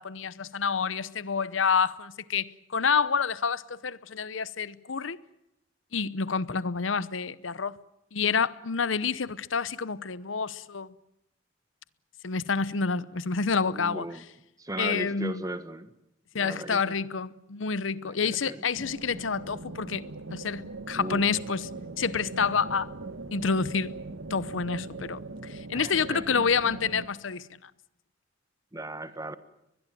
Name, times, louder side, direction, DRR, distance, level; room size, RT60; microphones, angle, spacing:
voice 1, 0.0-5.2 5.9-7.8 8.1-10.9 12.2-14.0 14.8-15.4 16.3-20.0 20.3-21.7 22.0-22.9 23.3-23.9 24.3-27.5, left 5 dB, 85° left, 0.9 m, -28 dB
voice 2, 13.6-14.2 14.6-15.9 16.4-16.9 18.1-18.6 20.9-21.3 25.7-26.4 28.7-29.4, right 1 dB, 20° right, 1.5 m, -37 dB
sound 1, 18.7-27.1, right 3 dB, 80° right, 1.4 m, -40 dB
23.0 x 21.0 x 9.2 m
head